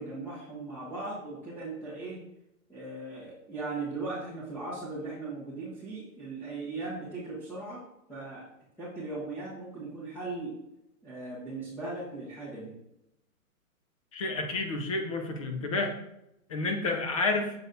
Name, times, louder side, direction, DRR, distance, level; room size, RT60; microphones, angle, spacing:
voice 1, 0.0-2.2 2.7-7.8 8.1-8.5 8.8-10.6 11.0-12.7, right 3 dB, 5° left, -10 dB, 1.2 m, -38 dB
voice 2, 14.1-16.0 16.5-17.5, left 3 dB, 25° left, 4 dB, 0.5 m, -30 dB
6.9 x 4.1 x 3.8 m, 0.86 s
hypercardioid pair, 155°, 43 cm